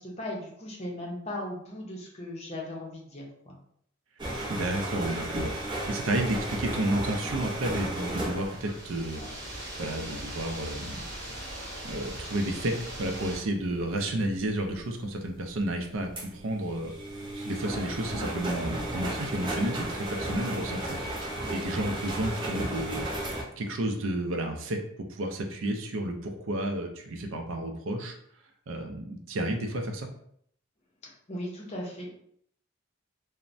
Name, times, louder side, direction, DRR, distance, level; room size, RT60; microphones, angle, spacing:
voice 1, 0.0-3.6 31.3-32.2, left 1 dB, 30° left, -2 dB, 0.6 m, -37 dB
sound 1, 4.2-9.8 10.3-10.5 11.2-11.4 12.1-12.3 14.1-14.2 14.8-14.9 15.2-15.3 16.2-23.4, right 1 dB, 20° right, 0.6 m, -34 dB
voice 2, 4.5-5.5 5.9-9.2 9.8-11.0 11.8-16.9 17.3-23.0 23.6-24.8 25.1-28.2 28.7-30.1, right 1 dB, 70° right, 4 dB, 0.4 m, -31 dB
sound 2, 8.4-13.4, right 1 dB, 50° right, 0.9 m, -40 dB
3.1 x 2.0 x 2.5 m, 0.67 s
head